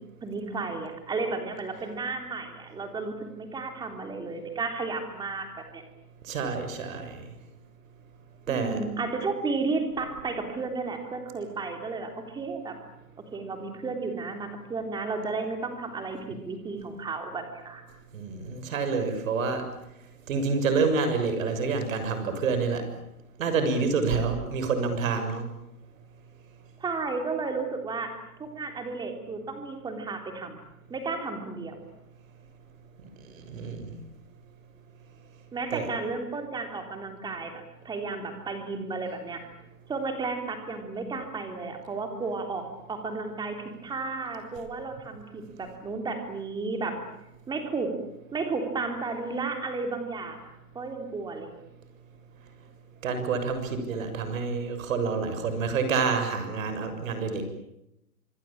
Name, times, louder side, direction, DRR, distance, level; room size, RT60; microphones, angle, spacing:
voice 1, 0.2-5.5 5.7-5.8 8.5-12.8 13.3-17.8 26.8-28.1 28.4-30.6 30.9-31.8 35.5-39.5 39.9-42.6 42.9-47.0 47.5-47.9 48.3-51.5, right 3 dB, 10° right, 6 dB, 3.5 m, -33 dB
voice 2, 6.2-7.2 8.5-8.8 18.1-19.6 20.3-22.8 23.4-25.4 33.3-33.9 35.7-35.9 53.0-57.4, right 4 dB, 55° right, 8 dB, 6.8 m, -28 dB
26.5 x 22.0 x 8.8 m, 0.84 s
hypercardioid pair, 155°, 47 cm